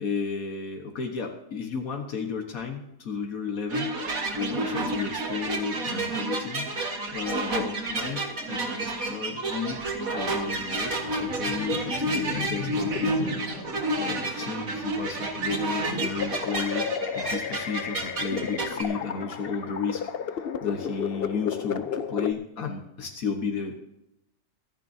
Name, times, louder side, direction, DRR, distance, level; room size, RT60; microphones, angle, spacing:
voice 1, 0.0-6.7 7.1-9.9 10.1-16.9 17.2-23.7, left 5 dB, 75° left, 3 dB, 1.8 m, -33 dB
sound 1, 3.7-18.8, right 2 dB, 75° right, 2.2 m, -30 dB
sound 2, 10.6-15.1 15.6-22.3, left 7 dB, 50° left, 0.8 m, -34 dB
25.0 x 10.0 x 2.8 m, 0.88 s
omnidirectional pair, 1.5 m